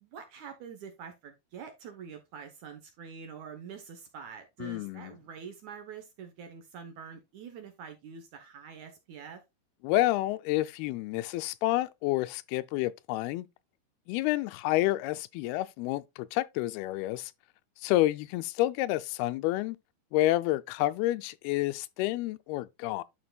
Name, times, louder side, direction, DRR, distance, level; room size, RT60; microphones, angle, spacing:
voice 1, 0.0-9.4, right 6 dB, 65° right, 2.0 m, -45 dB
voice 2, 4.6-5.1 9.8-13.5 14.1-17.3 17.8-19.8 20.1-23.0, left 16 dB, 85° left, 2.5 m, -29 dB
11.0 x 5.1 x 2.3 m
omnidirectional pair, 4.4 m